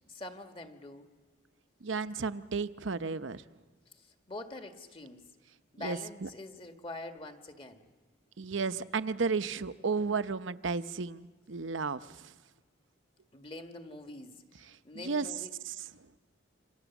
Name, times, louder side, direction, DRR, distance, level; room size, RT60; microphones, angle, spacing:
voice 1, 0.1-1.1 3.9-5.2 5.7-7.9 13.3-14.4 14.8-15.5, left 2 dB, 25° left, 5 dB, 1.7 m, -45 dB
voice 2, 1.8-3.4 5.8-6.3 8.4-12.3 14.9-15.3 15.6-15.7, right 4 dB, 75° right, 12 dB, 0.8 m, -33 dB
27.5 x 27.0 x 7.2 m, 1.4 s
head